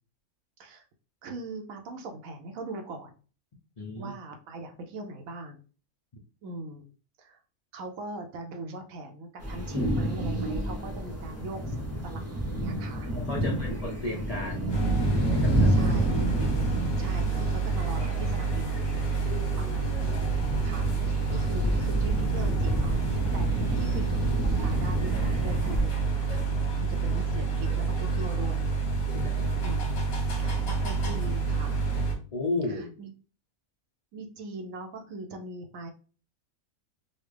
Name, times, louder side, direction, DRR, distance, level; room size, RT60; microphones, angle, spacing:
voice 1, 1.2-3.1 3.9-5.6 6.4-6.8 7.2-7.4 7.7-11.8 12.0-13.1 13.4-13.7 15.7-16.2 16.9-19.1 19.6-24.2 24.6-26.5 26.8-28.7 29.6-29.9 30.4-31.9 32.7-33.1 34.1-35.9, right 2 dB, 75° right, 4 dB, 1.0 m, -41 dB
voice 2, 3.8-4.1 13.2-14.7 15.3-15.8 29.1-29.5 32.3-32.9, left 2 dB, 50° left, -2 dB, 0.4 m, -33 dB
sound 1, 9.4-25.8, right 1 dB, 20° right, 0.5 m, -30 dB
sound 2, 14.7-32.2, right 4 dB, 85° left, 1.4 m, -28 dB
4.1 x 2.0 x 3.2 m, 0.37 s
omnidirectional pair, 1.5 m